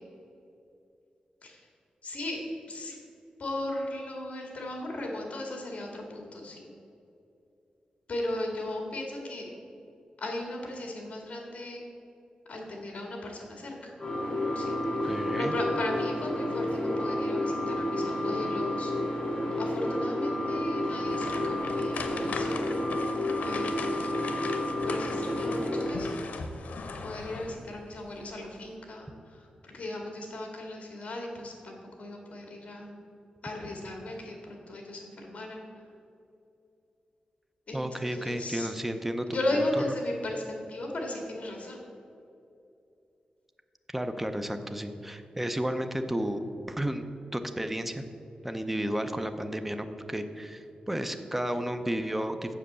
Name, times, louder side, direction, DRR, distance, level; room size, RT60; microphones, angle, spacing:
voice 1, 2.0-3.0 3.4-6.7 8.1-9.5 10.2-11.9 12.5-13.9 14.6-14.8 15.4-22.6 23.4-24.1 24.8-26.2 27.0-32.9 33.4-35.9 37.7-38.7 39.3-41.8, left 1 dB, 55° left, 1 dB, 2.1 m, -36 dB
sound 1, 14.0-25.9, left 1 dB, 35° left, 2.4 m, -30 dB
voice 2, 14.9-15.5 37.7-39.3 39.5-39.6 43.9-46.4 46.7-48.0 48.4-52.6, right 1 dB, 10° right, 7 dB, 0.5 m, -32 dB
sound 2, 21.0-27.7 28.1-28.3 28.7-28.8, left 4 dB, 90° left, 0.8 m, -39 dB
7.6 x 7.0 x 6.8 m, 2.7 s
wide cardioid pair, 130°, 3 cm